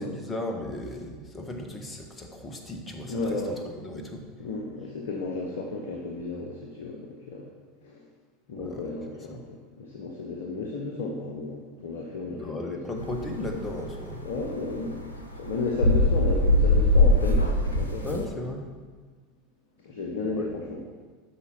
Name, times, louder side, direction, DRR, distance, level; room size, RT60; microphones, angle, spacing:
voice 1, 0.0-4.2 8.6-8.9 9.3-9.4 12.3-14.2 18.0-18.7 20.3-20.5, left 1 dB, 20° left, 3 dB, 1.3 m, -36 dB
voice 2, 3.1-3.5 4.4-7.5 7.8-8.1 8.5-12.8 14.2-15.0 15.4-18.4 19.8-20.8, left 3 dB, 60° left, 1 dB, 1.0 m, -33 dB
sound 1, 13.0-18.3, left 1 dB, 80° left, 1.0 m, -23 dB
8.2 x 6.0 x 5.8 m, 1.5 s
figure-of-eight pair, 80°, 0 cm